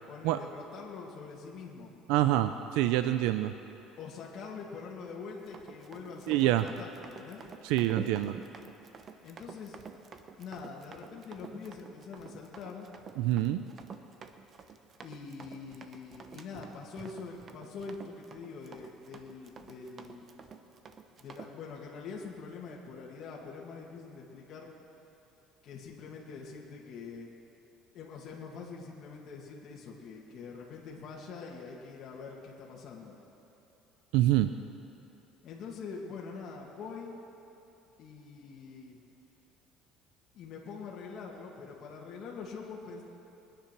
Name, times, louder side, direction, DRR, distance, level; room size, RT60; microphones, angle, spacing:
voice 1, 0.1-2.5 4.0-7.4 9.2-9.8 10.4-12.9 15.0-20.3 21.2-24.7 25.6-27.3 27.9-33.2 35.4-37.2 38.0-39.0 40.3-43.0, left 5 dB, 50° left, -3 dB, 2.2 m, -44 dB
voice 2, 2.1-3.5 6.3-6.7 7.6-8.4 13.2-13.6 34.1-34.5, right 14 dB, 85° right, 10 dB, 0.5 m, -26 dB
Run, 5.4-21.5, right 6 dB, 35° right, 0.9 m, -48 dB
22.0 x 10.0 x 6.1 m, 3.0 s
cardioid pair, 135°, 0 cm